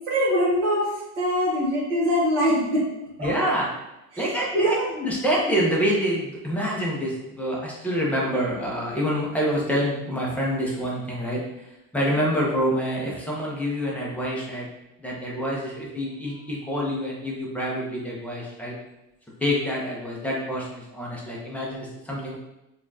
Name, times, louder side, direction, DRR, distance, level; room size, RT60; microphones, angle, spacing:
voice 1, 0.1-2.8 3.2-3.3 4.1-4.8, equal, 40° right, -7 dB, 1.4 m, -23 dB
voice 2, 3.2-3.7 4.2-11.7 11.9-14.7 15.0-18.7 19.4-22.3, equal, 5° left, -4 dB, 0.6 m, -26 dB
4.3 x 2.4 x 2.6 m, 0.92 s
supercardioid pair, 130°, 39 cm